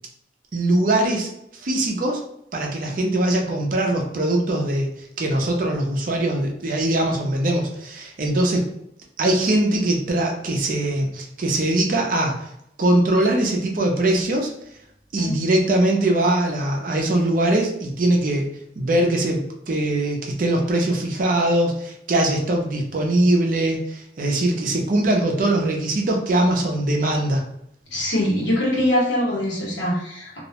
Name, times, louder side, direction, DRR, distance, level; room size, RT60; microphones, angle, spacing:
voice 1, 0.5-1.3 1.6-2.2 2.5-4.9 5.2-8.6 9.2-12.3 12.8-14.5 15.1-18.5 18.8-27.4, right 1 dB, 45° right, 1 dB, 0.4 m, -21 dB
voice 2, 27.9-30.4, left 1 dB, 85° left, -4 dB, 1.0 m, -23 dB
2.4 x 2.1 x 2.8 m, 0.76 s
head